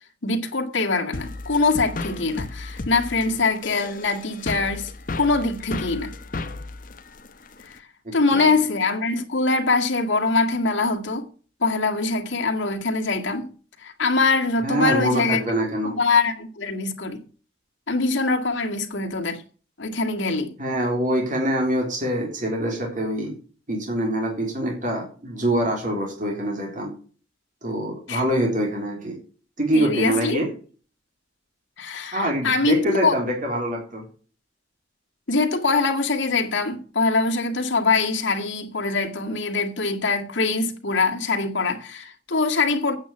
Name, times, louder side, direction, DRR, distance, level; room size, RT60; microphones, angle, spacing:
voice 1, 0.2-6.1 7.6-7.8 8.1-11.3 11.6-13.5 13.8-15.4 15.8-17.2 17.9-19.4 19.8-20.5 28.1-28.2 29.7-30.4 31.8-33.2 35.3-43.0, left 3 dB, 80° left, 2.0 m, -23 dB
sound 1, 1.1-7.8, left 2 dB, 45° left, 1.0 m, -34 dB
voice 2, 8.1-8.6 14.6-16.0 20.6-23.4 23.7-26.9 27.6-29.2 29.6-30.5 32.1-34.0, right 1 dB, 40° right, 3.6 m, -25 dB
8.9 x 7.2 x 8.3 m
head